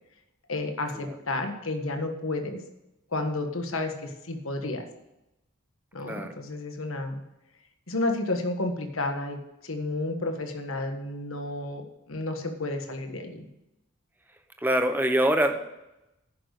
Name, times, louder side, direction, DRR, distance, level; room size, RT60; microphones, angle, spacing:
voice 1, 0.5-2.6 3.1-4.8 5.9-7.2 7.9-9.4 9.6-11.8 12.1-13.4, left 2 dB, 70° left, 5 dB, 1.5 m, -31 dB
voice 2, 14.6-15.6, right 1 dB, 10° right, 6 dB, 0.9 m, -24 dB
10.5 x 6.6 x 6.6 m, 0.92 s
head